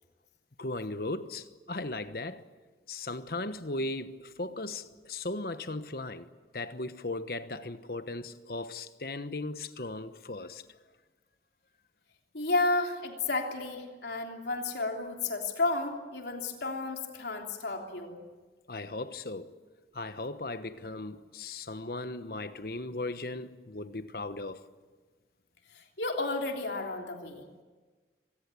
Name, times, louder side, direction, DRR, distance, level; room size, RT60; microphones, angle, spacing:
voice 1, 0.6-2.4 2.9-6.3 6.5-10.6 18.7-19.6 19.9-24.7, left 2 dB, 55° left, 1.1 m, -37 dB
voice 2, 12.3-18.1 25.7-27.4, left 2 dB, 75° left, 3.3 m, -32 dB
25.5 x 18.5 x 8.6 m
head